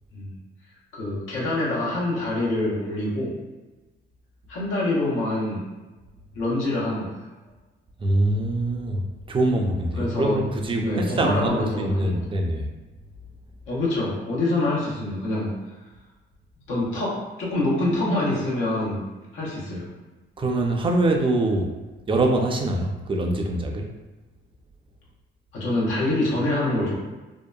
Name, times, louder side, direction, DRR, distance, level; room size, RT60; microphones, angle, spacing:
voice 1, 0.9-3.4 4.5-5.7 6.3-7.2 10.0-10.4 10.8-12.2 13.7-15.6 16.7-19.0 19.3-19.9 25.5-27.0, left 2 dB, 85° left, -5 dB, 0.8 m, -25 dB
voice 2, 8.0-12.7 20.4-21.7 22.1-23.9, right 2 dB, 25° right, 2 dB, 0.4 m, -24 dB
2.7 x 2.1 x 2.3 m, 1.2 s
cardioid pair, 90°, 20 cm